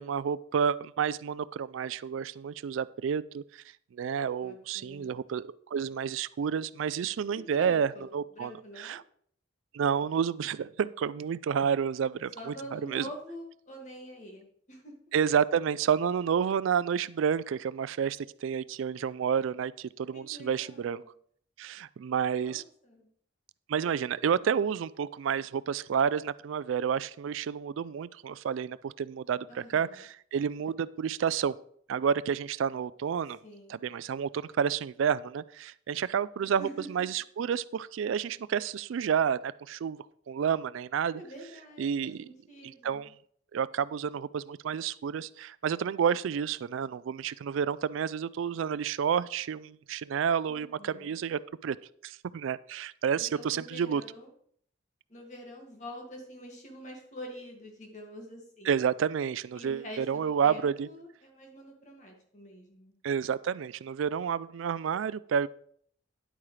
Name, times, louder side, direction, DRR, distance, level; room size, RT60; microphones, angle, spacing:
voice 1, 0.0-3.6 3.9-8.5 8.8-9.0 9.7-13.1 15.1-21.0 21.6-22.6 23.7-31.6 31.9-33.4 33.7-41.2 41.8-42.3 42.6-43.1 43.5-51.8 52.0-54.0 58.7-60.9 63.0-65.5, right 7 dB, 90° right, 18 dB, 0.3 m, -30 dB
voice 2, 4.4-5.2 7.3-9.0 12.3-14.9 20.1-21.1 22.3-23.1 29.5-30.0 33.4-33.8 36.4-36.9 41.1-43.1 50.5-51.1 53.2-54.3 55.1-58.8 59.5-63.0, equal, 40° left, 1 dB, 2.1 m, -46 dB
10.0 x 8.5 x 3.3 m, 0.62 s
head